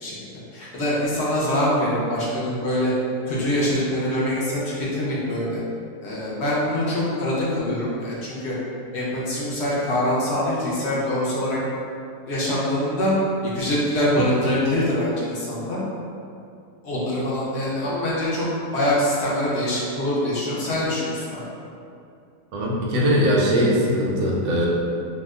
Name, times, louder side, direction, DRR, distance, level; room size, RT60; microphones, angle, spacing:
voice 1, 0.0-2.9 3.3-5.6 6.0-8.6 8.9-11.6 12.3-13.1 13.4-15.8 16.8-18.5 18.7-21.4, left 1 dB, 60° left, -7 dB, 0.7 m, -24 dB
voice 2, 22.5-24.7, equal, 70° right, -3 dB, 1.0 m, -20 dB
2.8 x 2.1 x 3.5 m, 2.5 s
omnidirectional pair, 1.7 m